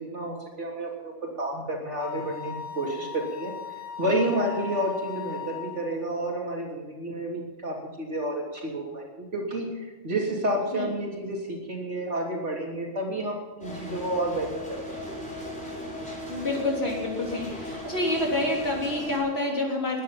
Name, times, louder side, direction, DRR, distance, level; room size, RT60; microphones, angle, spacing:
voice 1, 0.0-3.5 4.0-14.8, right 1 dB, 65° right, -1 dB, 3.5 m, -30 dB
Wind instrument woodwind instrument, 2.0-5.8, left 6 dB, 75° left, 4.7 m, -38 dB
sound 1, 13.6-19.2, left 1 dB, 5° left, 5.4 m, -37 dB
voice 2, 16.3-20.0, left 1 dB, 55° left, -2 dB, 3.8 m, -28 dB
20.0 x 10.0 x 5.8 m, 1.2 s
omnidirectional pair, 1.3 m